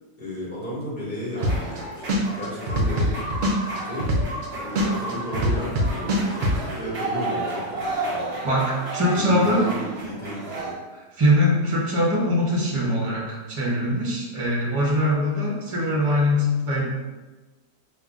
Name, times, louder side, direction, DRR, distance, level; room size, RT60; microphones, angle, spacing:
voice 1, 0.2-3.2 3.8-4.1 4.5-8.4 9.1-10.7, equal, 30° left, -8 dB, 1.6 m, -33 dB
sound 1, 1.4-10.7, right 2 dB, 40° right, 1.3 m, -32 dB
sound 2, 1.4-1.8 2.1-4.5 4.8-6.6, equal, 60° right, 0.8 m, -22 dB
voice 2, 8.4-9.6 11.1-16.8, left 1 dB, 25° right, -5 dB, 0.8 m, -22 dB
5.4 x 2.9 x 2.4 m, 1.2 s
omnidirectional pair, 1.8 m